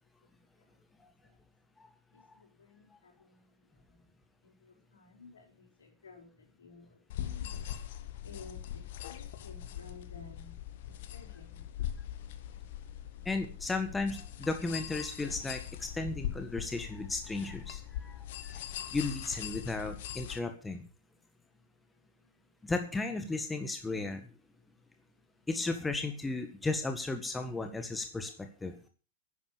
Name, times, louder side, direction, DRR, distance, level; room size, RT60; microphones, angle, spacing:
voice 1, 2.1-4.0 4.4-7.7 8.2-11.6, left 4 dB, 70° left, 5.2 m, -54 dB
sound 1, 7.1-20.4, left 11 dB, 55° left, 1.4 m, -41 dB
voice 2, 13.3-18.6 18.9-20.8 22.6-24.2 25.5-28.3 28.6-28.7, left 3 dB, 10° left, 1.6 m, -35 dB
11.5 x 10.0 x 6.9 m
figure-of-eight pair, 90°, 0 cm